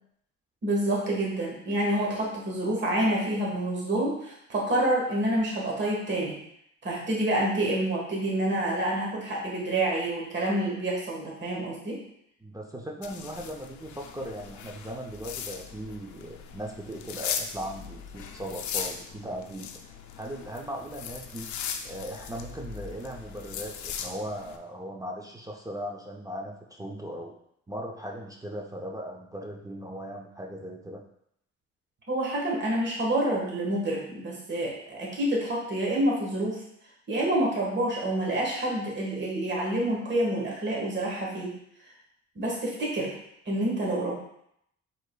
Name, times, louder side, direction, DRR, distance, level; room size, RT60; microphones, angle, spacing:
voice 1, 0.6-6.4 6.8-12.0 32.1-36.6 37.1-41.5 42.3-43.2 43.4-44.1, right 1 dB, 40° right, -3 dB, 1.4 m, -28 dB
voice 2, 12.4-19.7 20.2-21.5 21.8-27.3 27.7-31.0, right 1 dB, 10° right, 0 dB, 0.5 m, -38 dB
sound 1, 13.0-24.6, left 7 dB, 70° left, 0.5 m, -39 dB
4.8 x 3.8 x 2.2 m, 0.73 s
cardioid pair, 90°, 30 cm